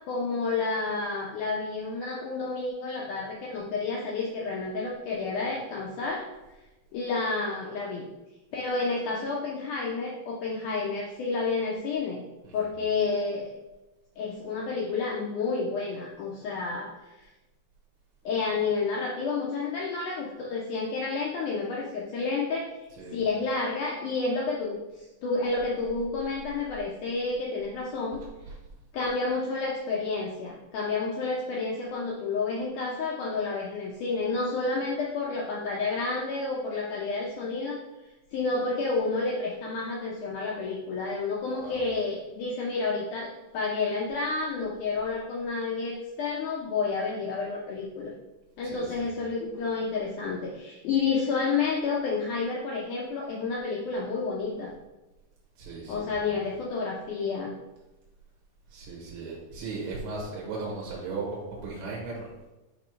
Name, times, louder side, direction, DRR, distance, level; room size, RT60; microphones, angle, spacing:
voice 1, 0.0-6.2 6.9-8.1 8.5-12.2 12.5-13.5 14.2-17.3 18.3-22.7 23.1-28.2 28.9-37.8 38.3-48.1 48.6-54.7 55.9-57.5, left 4 dB, 85° left, -2 dB, 1.7 m, -30 dB
voice 2, 22.9-23.2 28.4-28.6 41.6-41.8 48.6-49.1 55.6-56.4 58.7-62.5, right 3 dB, 80° right, -4 dB, 3.2 m, -37 dB
8.8 x 3.0 x 5.1 m, 1.1 s
omnidirectional pair, 4.6 m